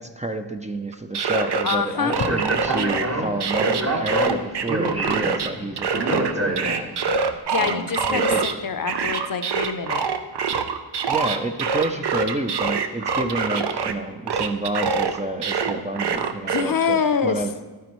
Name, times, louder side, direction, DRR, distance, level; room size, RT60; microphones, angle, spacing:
voice 1, 0.0-6.9 7.6-8.4 11.1-17.5, right 2 dB, 15° right, 5 dB, 0.4 m, -29 dB
sound 1, 0.9-1.8 2.1-3.1 3.4-5.5 5.8-8.5 8.9-13.9 14.3-16.6, right 5 dB, 70° right, 0.7 m, -24 dB
voice 2, 1.6-2.2 7.5-10.0 16.5-17.4, left 6 dB, 55° left, 9 dB, 0.6 m, -25 dB
Speech, 2.1-7.1, right 1 dB, 35° right, 1.1 m, -27 dB
12.0 x 9.3 x 3.1 m, 1.3 s
wide cardioid pair, 105°, 42 cm